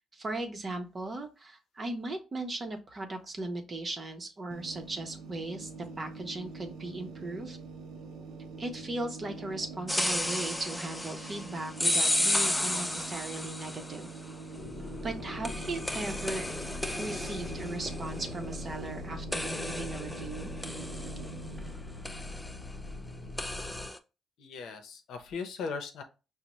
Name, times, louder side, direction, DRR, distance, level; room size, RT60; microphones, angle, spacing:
voice 1, 0.1-7.6 8.6-14.1 15.0-16.5 17.0-20.5, right 2 dB, 35° right, 5 dB, 0.7 m, -37 dB
sound 1, 4.5-21.7, right 4 dB, 85° right, 0.5 m, -45 dB
sound 2, 9.9-14.1 15.4-19.0 19.3-21.7 22.0-22.6 23.4-24.0, left 1 dB, 10° left, 0.3 m, -33 dB
sound 3, 14.6-23.9, left 2 dB, 45° left, 0.9 m, -42 dB
voice 2, 24.4-26.0, left 5 dB, 80° left, 6 dB, 0.7 m, -38 dB
5.1 x 2.1 x 2.9 m, 0.30 s
cardioid pair, 110°, 0 cm